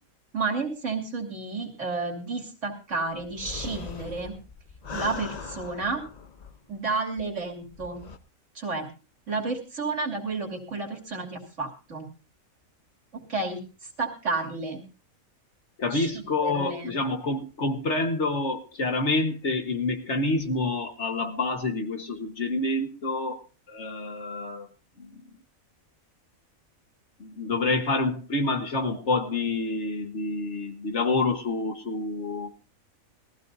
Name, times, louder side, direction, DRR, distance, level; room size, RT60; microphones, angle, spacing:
voice 1, 0.3-4.4 4.9-6.0 6.7-8.0 8.5-8.9 9.3-12.1 13.1-14.8 15.9-16.1 16.4-17.0, right 3 dB, 60° right, 3 dB, 3.1 m, -31 dB
sound 1, 3.2-6.8 7.2-7.3 7.7-8.2, left 5 dB, 35° left, 0.8 m, -39 dB
voice 2, 15.8-23.4 23.7-24.7 25.0-25.2 27.2-32.5, left 2 dB, 55° left, 6 dB, 1.7 m, -28 dB
21.5 x 15.0 x 2.7 m, 0.33 s
omnidirectional pair, 1.4 m